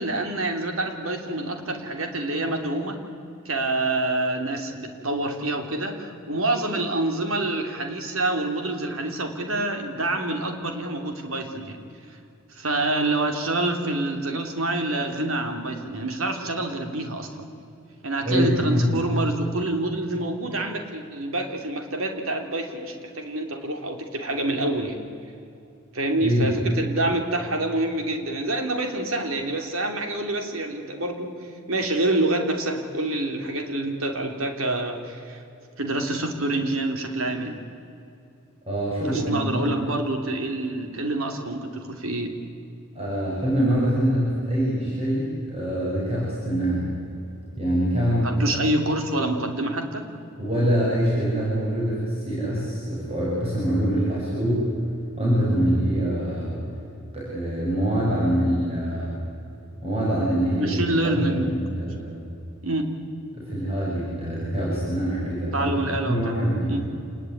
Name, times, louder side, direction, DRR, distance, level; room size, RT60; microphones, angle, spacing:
voice 1, 0.0-3.0 3.4-11.8 12.5-17.5 18.0-25.0 25.9-31.4 31.7-35.4 35.8-37.6 39.0-42.4 48.2-50.1 60.6-61.5 62.6-62.9 65.5-66.4 66.7-66.8, right 2 dB, 70° right, 5 dB, 3.1 m, -27 dB
voice 2, 18.3-19.0 26.2-26.5 38.7-39.7 43.0-46.9 47.6-48.3 50.4-54.7 55.2-56.5 57.1-59.1 59.8-62.1 63.3-66.7, equal, 30° right, -7 dB, 7.2 m, -24 dB
27.0 x 20.0 x 9.5 m, 2.7 s
head